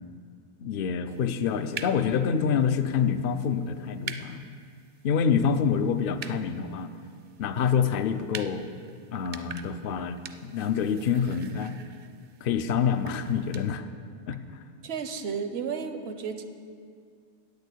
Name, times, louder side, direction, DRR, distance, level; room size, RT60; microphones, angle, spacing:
voice 1, 0.6-4.4 5.0-6.9 7.4-8.7 9.1-11.8 12.4-13.8 14.3-14.4, left 7 dB, 65° left, 10 dB, 0.7 m, -26 dB
sound 1, 1.1-13.7, right 7 dB, 55° right, 0.6 m, -46 dB
voice 2, 14.8-16.4, right 6 dB, 80° right, 9 dB, 1.0 m, -33 dB
8.9 x 6.7 x 8.2 m, 2.2 s
omnidirectional pair, 1.1 m